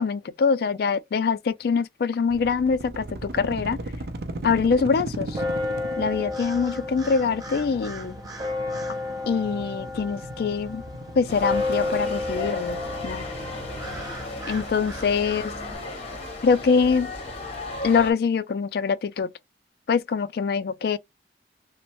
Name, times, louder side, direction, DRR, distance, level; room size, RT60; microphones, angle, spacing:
voice 1, 0.0-3.8 4.4-5.4 6.0-8.2 9.3-10.8 11.2-13.3 14.5-15.5 16.4-17.1 17.8-19.3 19.9-21.0, left 5 dB, 60° left, 0.3 m, -24 dB
sound 1, 2.3-14.0, right 2 dB, 60° right, 0.5 m, -38 dB
sound 2, 5.3-15.8, left 2 dB, 20° right, 0.7 m, -32 dB
sound 3, 11.3-18.1, left 2 dB, 35° left, 0.9 m, -35 dB
3.0 x 2.1 x 2.8 m
head